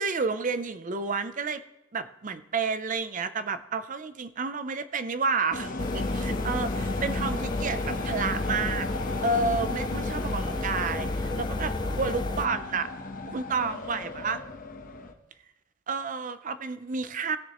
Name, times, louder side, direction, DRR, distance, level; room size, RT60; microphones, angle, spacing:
voice 1, 0.0-1.6 1.9-8.9 9.2-12.9 13.3-14.4 15.9-17.4, right 4 dB, 40° right, 12 dB, 0.5 m, -30 dB
sound 1, 5.5-15.1, left 2 dB, 45° left, 1.0 m, -35 dB
sound 2, 5.8-12.5, left 2 dB, 20° left, 0.4 m, -32 dB
19.0 x 6.7 x 3.0 m, 0.95 s
head